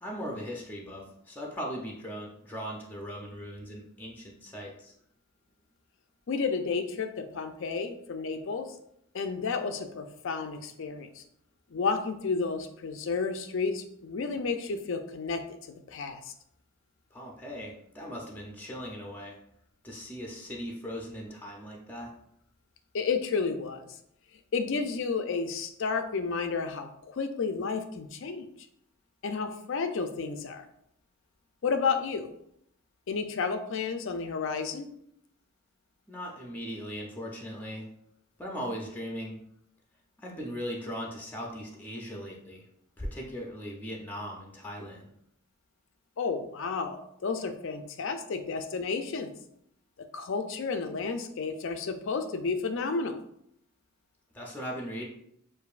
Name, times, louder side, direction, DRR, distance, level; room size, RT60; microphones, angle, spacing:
voice 1, 0.0-4.9 17.1-19.4 19.8-22.1 36.1-37.9 38.4-39.4 40.2-42.6 43.0-45.0 54.3-55.1, equal, 10° left, -1 dB, 0.6 m, -39 dB
voice 2, 6.3-8.7 9.1-11.2 11.7-16.3 22.9-23.9 24.5-28.5 29.2-30.6 31.6-32.3 33.1-34.9 46.2-49.3 50.1-53.2, left 4 dB, 60° left, 7 dB, 0.4 m, -31 dB
6.7 x 2.6 x 2.4 m, 0.73 s
head